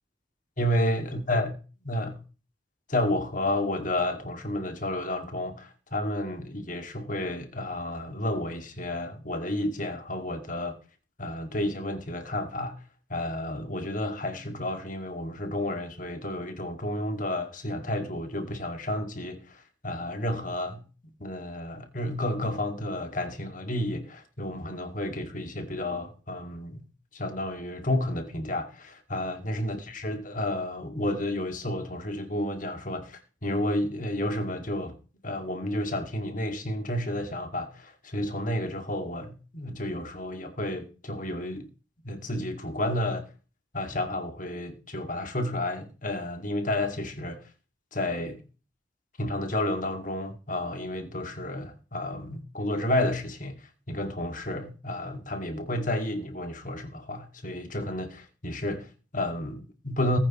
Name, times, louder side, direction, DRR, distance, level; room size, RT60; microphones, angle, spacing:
voice 1, 0.6-1.5 1.8-2.2 2.9-10.8 11.2-12.8 13.1-20.8 21.2-26.8 27.1-35.0 35.2-41.7 42.0-43.3 43.7-47.4 47.9-48.4 49.2-60.2, left 1 dB, 45° left, 2.3 m, -31 dB
19.5 x 9.4 x 3.1 m
head